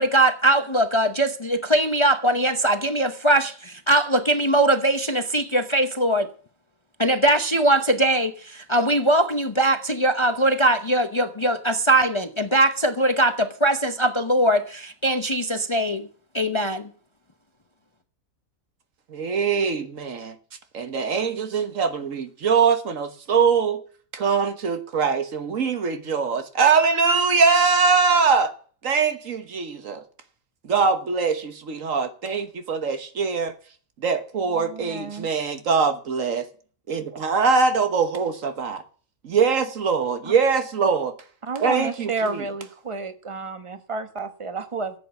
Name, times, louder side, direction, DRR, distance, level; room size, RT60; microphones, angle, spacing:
voice 1, 0.0-6.3 7.0-16.1 16.3-16.9, right 1 dB, 25° left, 0.8 m, -21 dB
voice 2, 19.1-20.3 20.7-23.8 24.1-28.5 28.8-30.0 30.6-33.5 34.0-36.4 36.9-38.8 39.2-41.1 41.6-42.4, right 5 dB, 70° right, 1.6 m, -22 dB
voice 3, 34.5-35.3 40.2-40.3 41.4-44.9, right 4 dB, 25° right, 1.1 m, -31 dB
14.5 x 8.0 x 7.0 m
omnidirectional pair, 1.4 m